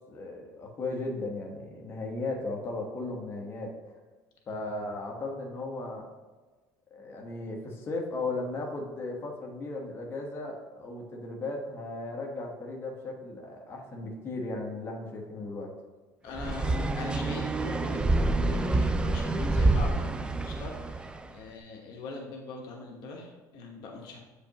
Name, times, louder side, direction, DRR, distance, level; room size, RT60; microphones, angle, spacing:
voice 1, 0.1-3.9 4.5-6.1 6.9-15.7, left 2 dB, 35° left, -1 dB, 1.2 m, -36 dB
voice 2, 16.2-20.1 20.4-24.2, left 3 dB, 65° left, 1 dB, 1.1 m, -42 dB
sound 1, 16.4-21.2, right 2 dB, 15° right, 0.4 m, -27 dB
8.1 x 5.1 x 2.9 m, 1.3 s
cardioid pair, 135°, 7 cm